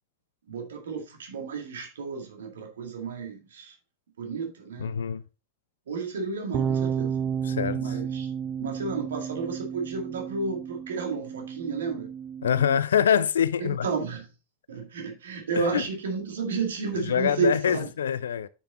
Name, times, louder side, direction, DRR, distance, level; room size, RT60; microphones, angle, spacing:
voice 1, 0.5-3.8 4.2-5.0 5.9-7.2 7.8-8.3 8.6-12.1 13.6-14.3 14.7-17.9, right 4 dB, 65° right, 1.9 m, -32 dB
voice 2, 4.8-5.2 7.4-8.0 12.4-13.9 15.7-15.8 17.0-18.5, left 8 dB, 65° left, 0.4 m, -25 dB
sound 1, 6.5-12.8, right 7 dB, 30° right, 0.5 m, -32 dB
6.7 x 5.8 x 4.1 m
figure-of-eight pair, 90°, 0 cm